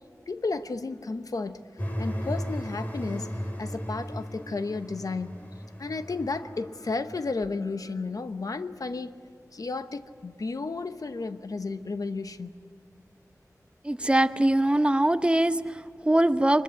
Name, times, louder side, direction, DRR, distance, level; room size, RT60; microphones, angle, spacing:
voice 1, 0.3-1.6 2.0-3.3 3.6-5.4 5.8-9.1 9.5-12.6, left 3 dB, 75° left, 10 dB, 0.9 m, -33 dB
sound 1, 1.8-7.3, equal, 30° left, 3.2 m, -35 dB
voice 2, 13.8-16.6, right 1 dB, 15° right, 12 dB, 0.8 m, -23 dB
23.5 x 21.0 x 8.3 m, 2.6 s
wide cardioid pair, 75°, 6 cm